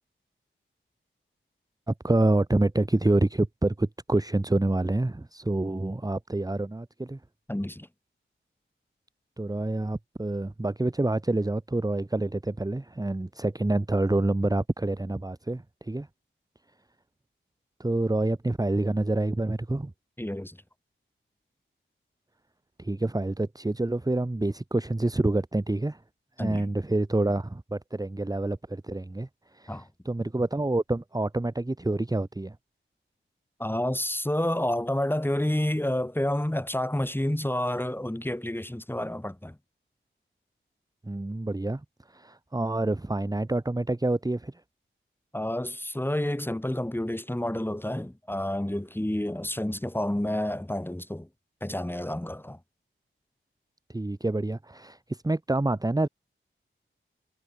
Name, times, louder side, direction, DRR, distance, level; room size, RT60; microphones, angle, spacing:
voice 1, 1.9-7.2 9.4-16.1 17.8-19.9 22.8-26.0 26.4-29.3 29.5-32.5 41.0-41.8 42.1-44.5 53.9-56.1, right 2 dB, 15° right, 1.5 m, -27 dB
voice 2, 7.5-7.9 20.2-20.6 26.4-26.6 29.7-29.9 33.6-39.6 45.3-51.3 51.6-52.6, left 1 dB, 10° left, 5.7 m, -29 dB
wide cardioid pair, 85°, 21 cm